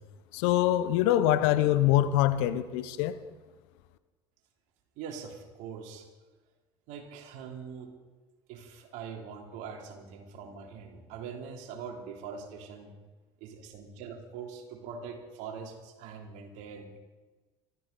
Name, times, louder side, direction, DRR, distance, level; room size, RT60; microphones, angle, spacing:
voice 1, 0.3-3.1, left 13 dB, 70° left, 1.1 m, -24 dB
voice 2, 5.0-6.1 6.9-7.9 8.5-12.9 13.4-17.0, right 6 dB, 60° right, 3.4 m, -43 dB
25.0 x 14.0 x 4.1 m
hypercardioid pair, 75°, 14 cm